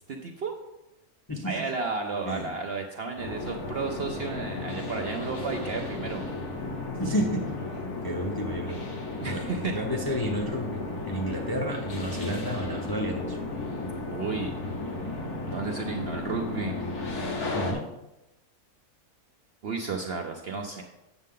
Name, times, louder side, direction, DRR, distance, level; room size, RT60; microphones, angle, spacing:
voice 1, 0.1-0.5 1.4-6.3 9.2-9.7 14.1-14.6 15.5-16.8 19.6-20.8, right 4 dB, 55° right, 2 dB, 0.7 m, -32 dB
sound 1, 3.2-17.7, left 2 dB, 90° left, 1.8 m, -34 dB
voice 2, 7.0-7.6 8.0-8.8 9.3-13.4 17.5-17.9, equal, 20° left, -1 dB, 0.6 m, -31 dB
8.1 x 6.6 x 3.7 m, 0.95 s
omnidirectional pair, 1.6 m